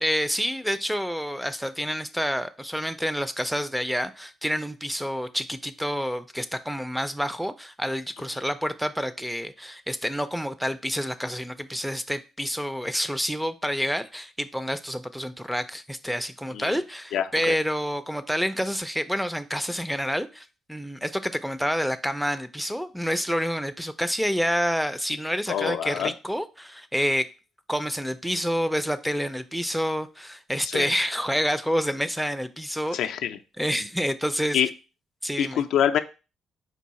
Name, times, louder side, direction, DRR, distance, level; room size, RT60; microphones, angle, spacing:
voice 1, 0.0-27.3 27.7-33.0 33.6-34.6 35.2-35.6, equal, ahead, 0.4 m, -28 dB
voice 2, 16.5-16.8 17.1-17.5 25.5-26.1 30.6-30.9 32.9-33.4 34.5-34.7 35.4-36.0, left 9 dB, 80° left, 0.4 m, -25 dB
4.6 x 2.4 x 4.1 m
cardioid pair, 90°, 0 cm